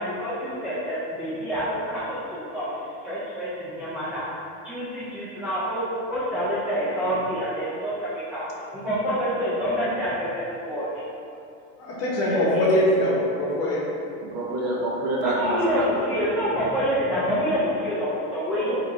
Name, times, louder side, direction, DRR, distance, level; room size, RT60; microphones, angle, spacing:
voice 1, 0.0-4.2 4.6-10.9 12.3-12.6 15.2-18.7, equal, 5° right, -12 dB, 0.4 m, -27 dB
voice 2, 11.8-13.8, left 1 dB, 40° left, -5 dB, 1.1 m, -22 dB
voice 3, 14.2-15.9 18.5-18.8, right 2 dB, 45° right, -3 dB, 0.7 m, -27 dB
4.4 x 3.1 x 2.7 m, 2.5 s
supercardioid pair, 150°, 38 cm